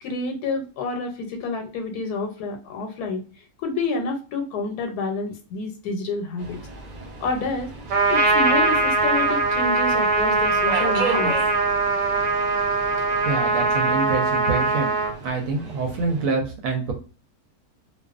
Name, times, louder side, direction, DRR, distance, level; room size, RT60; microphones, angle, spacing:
voice 1, 0.0-3.2 3.6-6.6 7.2-7.7 8.1-11.4, left 3 dB, 90° left, 4 dB, 1.1 m, -28 dB
Subway metro underground, 6.4-16.3, right 3 dB, 50° right, 0.5 m, -35 dB
Trumpet, 7.9-15.1, right 3 dB, 90° right, 1.1 m, -21 dB
voice 2, 13.2-14.9 15.2-16.9, right 4 dB, 70° right, 2 dB, 0.9 m, -26 dB
2.4 x 2.3 x 2.3 m, 0.36 s
omnidirectional pair, 1.6 m